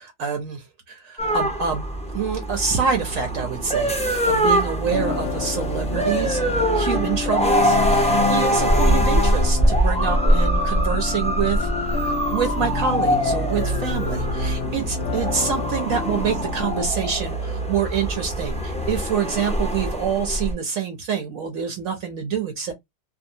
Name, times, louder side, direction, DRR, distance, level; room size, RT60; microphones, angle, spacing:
voice 1, 0.0-1.9 2.1-6.4 6.7-22.7, right 6 dB, 70° right, 0.9 m, -26 dB
sound 1, 1.2-20.5, equal, 10° left, 0.3 m, -23 dB
sound 2, 4.9-16.9, left 7 dB, 70° left, 0.9 m, -31 dB
2.7 x 2.1 x 2.6 m
omnidirectional pair, 1.6 m